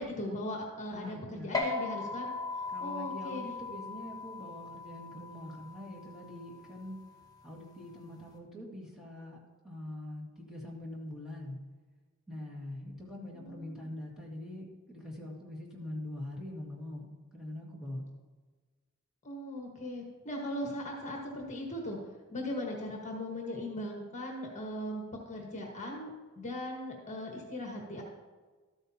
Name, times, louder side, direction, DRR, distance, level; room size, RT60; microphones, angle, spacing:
voice 1, 0.0-3.4 13.3-13.7 19.2-22.0 22.3-26.1 26.3-28.0, left 1 dB, 35° left, 0 dB, 1.5 m, -39 dB
voice 2, 0.9-1.6 2.7-7.0 7.4-11.6 12.3-17.1 17.3-18.0, left 1 dB, 5° right, -4 dB, 1.9 m, -43 dB
sound 1, 1.5-8.3, left 3 dB, 15° left, 1.1 m, -39 dB
13.0 x 8.7 x 2.9 m, 1.4 s
head